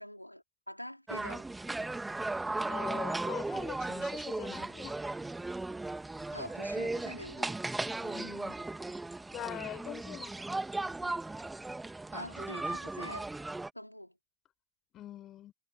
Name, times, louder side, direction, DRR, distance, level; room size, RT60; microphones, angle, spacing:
voice 1, 0.0-1.5 6.3-7.6 12.1-13.3 13.7-14.2, equal, 90° left, 3.6 m, -45 dB
sound 1, 1.1-13.7, right 2 dB, 5° right, 2.2 m, -36 dB
voice 2, 2.7-5.0 8.0-8.6 9.3-10.3 14.9-15.5, left 12 dB, 30° left, 6.4 m, -43 dB
figure-of-eight pair, 90°, 0 cm